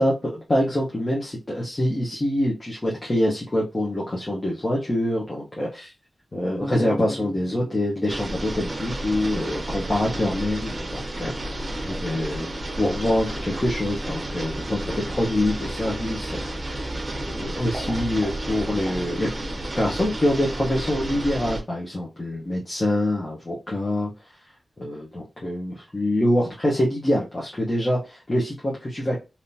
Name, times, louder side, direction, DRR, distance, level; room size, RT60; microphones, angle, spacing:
voice 1, 0.0-5.9 6.3-12.5 12.8-16.8 17.3-19.3 19.8-24.1 24.8-29.2, left 1 dB, 25° left, -5 dB, 1.1 m, -25 dB
Bass guitar, 6.6-9.6, equal, 5° right, 0.5 m, -39 dB
sound 1, 8.1-21.6, right 1 dB, 35° right, 0.9 m, -31 dB
3.7 x 2.9 x 2.8 m, 0.28 s
wide cardioid pair, 115°, 0 cm